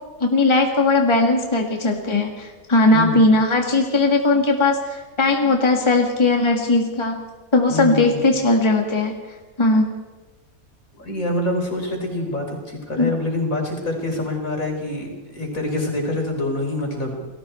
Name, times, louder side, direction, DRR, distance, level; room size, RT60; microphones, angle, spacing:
voice 1, 0.2-7.2 7.5-9.2 9.6-9.9 13.0-13.1, left 2 dB, 20° left, 1 dB, 2.1 m, -18 dB
voice 2, 2.9-3.3 7.7-8.3 11.0-17.3, left 1 dB, 65° left, 1 dB, 5.3 m, -26 dB
29.5 x 19.5 x 4.5 m, 1.2 s
omnidirectional pair, 1.5 m